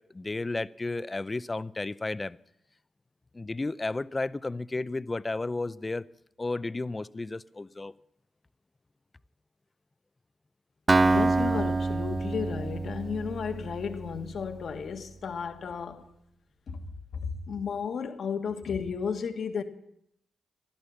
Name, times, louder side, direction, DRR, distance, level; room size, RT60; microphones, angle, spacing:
voice 1, 0.1-2.4 3.3-6.0 6.4-7.9, left 2 dB, 30° left, 0.6 m, -33 dB
Acoustic guitar, 10.9-14.7, right 3 dB, 35° right, 0.7 m, -27 dB
voice 2, 11.0-16.1 16.7-16.9 17.1-19.6, left 6 dB, 65° left, 1.6 m, -33 dB
16.0 x 12.0 x 7.1 m
supercardioid pair, 45°, 0 cm